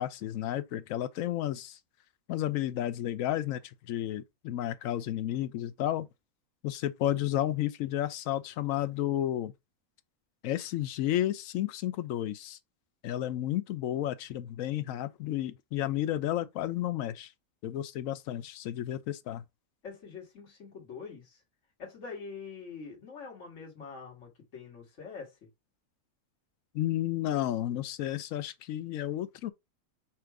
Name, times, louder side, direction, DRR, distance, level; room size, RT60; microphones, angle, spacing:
voice 1, 0.0-1.8 2.3-3.6 3.9-6.1 6.6-9.5 10.4-12.6 13.0-17.3 17.6-19.4 26.7-29.5, left 12 dB, 70° left, 0.9 m, -32 dB
voice 2, 19.8-21.4 21.8-25.4, left 5 dB, 55° left, 1.8 m, -44 dB
4.4 x 2.5 x 4.6 m
omnidirectional pair, 1.5 m